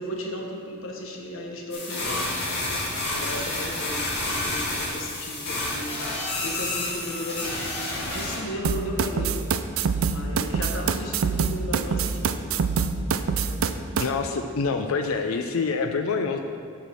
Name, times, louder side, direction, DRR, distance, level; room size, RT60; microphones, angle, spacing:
voice 1, 0.0-2.3 3.1-6.0 6.4-9.4 10.0-12.5 13.3-13.7, left 1 dB, 70° left, 1 dB, 1.3 m, -35 dB
sound 1, 1.7-8.4, left 2 dB, 55° left, 2.2 m, -29 dB
sound 2, 8.6-14.1, right 6 dB, 80° right, 0.4 m, -25 dB
voice 2, 14.0-16.4, left 4 dB, 90° left, 5 dB, 0.5 m, -26 dB
8.3 x 5.9 x 6.3 m, 2.3 s
head